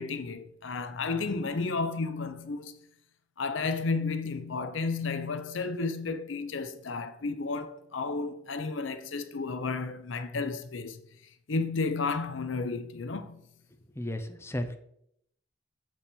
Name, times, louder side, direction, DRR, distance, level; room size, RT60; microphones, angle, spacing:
voice 1, 0.0-2.8 3.4-11.0 11.5-13.4, left 4 dB, 85° left, 0.7 m, -32 dB
voice 2, 13.9-14.8, left 1 dB, 15° left, 0.7 m, -34 dB
7.5 x 4.7 x 6.8 m
head